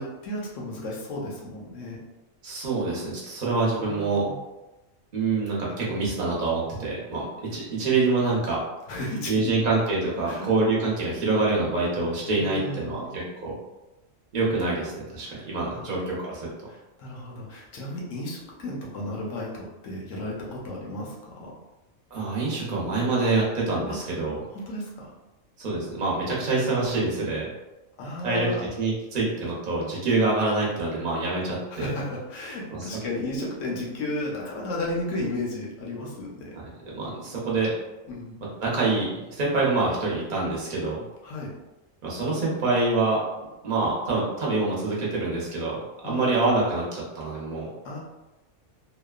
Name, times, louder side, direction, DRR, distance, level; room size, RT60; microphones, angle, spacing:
voice 1, 0.0-2.0 3.8-4.4 8.9-9.6 10.2-10.5 12.4-13.1 15.3-16.0 16.7-21.5 23.9-24.0 24.5-25.1 28.0-28.7 31.7-36.5 37.0-37.1 38.1-38.4 41.2-41.5 46.0-46.4 47.8-48.0, left 1 dB, 70° left, -3 dB, 1.0 m, -34 dB
voice 2, 2.4-4.2 5.1-7.2 7.5-8.6 9.3-13.5 14.3-16.5 22.1-24.4 25.6-27.5 28.2-28.5 28.7-31.9 32.7-32.9 36.8-37.7 38.6-41.0 42.0-43.2 43.6-45.8 46.0-47.7, right 3 dB, 45° right, -4 dB, 0.8 m, -26 dB
2.8 x 2.1 x 2.3 m, 1.0 s
omnidirectional pair, 1.4 m